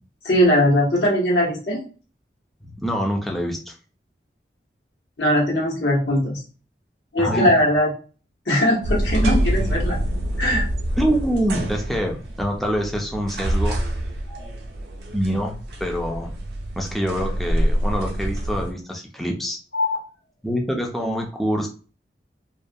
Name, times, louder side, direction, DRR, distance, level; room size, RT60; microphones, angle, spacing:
voice 1, 0.2-1.8 5.2-6.4 7.1-7.9 8.5-10.0 10.4-10.7 14.3-14.5 19.7-20.0, equal, 85° left, -3 dB, 1.0 m, -20 dB
voice 2, 2.8-3.8 7.2-7.5 11.0-13.8 15.1-16.3 16.8-19.6 20.4-21.7, equal, ahead, 0 dB, 0.3 m, -25 dB
sound 1, 8.8-18.7, right 1 dB, 75° right, 0.5 m, -26 dB
2.3 x 2.2 x 2.6 m, 0.37 s
head